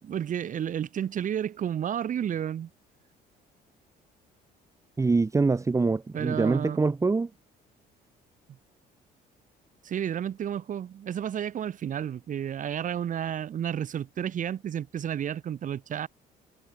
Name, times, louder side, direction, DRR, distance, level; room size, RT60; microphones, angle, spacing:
voice 1, 0.0-2.7 6.1-6.8 9.8-16.1, right 9 dB, 50° right, 3.1 m, -31 dB
voice 2, 5.0-7.3, right 3 dB, 20° right, 1.2 m, -24 dB
cardioid pair, 110°, 17 cm